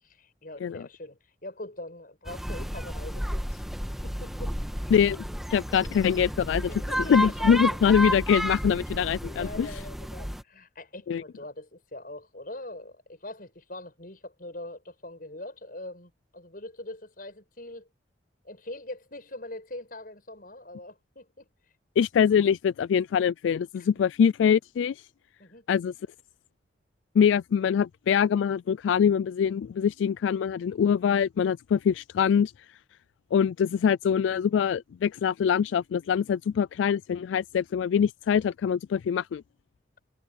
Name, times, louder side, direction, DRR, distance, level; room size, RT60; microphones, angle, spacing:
voice 1, 0.0-3.6 4.0-4.9 6.5-7.8 9.3-17.9 18.4-21.5 23.7-23.9 25.4-25.7 30.3-30.4, left 1 dB, 50° left, 6.6 m, -42 dB
sound 1, 2.2-10.4, equal, ahead, 1.6 m, -32 dB
voice 2, 4.9-5.2 5.5-6.7 7.1-9.7 11.1-11.2 22.0-25.0 25.7-25.9 27.2-32.5 33.3-39.4, left 7 dB, 85° left, 0.3 m, -24 dB
head